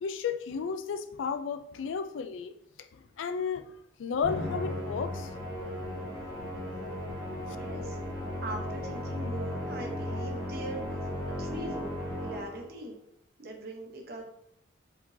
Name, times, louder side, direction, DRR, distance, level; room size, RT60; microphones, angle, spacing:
voice 1, 0.0-2.5 2.9-3.7 4.0-5.3 6.0-6.1, left 6 dB, 85° left, 0.4 m, -33 dB
Musical instrument, 4.2-12.8, left 1 dB, 15° left, 1.7 m, -36 dB
voice 2, 7.5-8.0 8.4-11.0 11.3-12.9 13.4-14.2, right 1 dB, 55° right, 0.9 m, -41 dB
4.7 x 3.8 x 2.7 m
head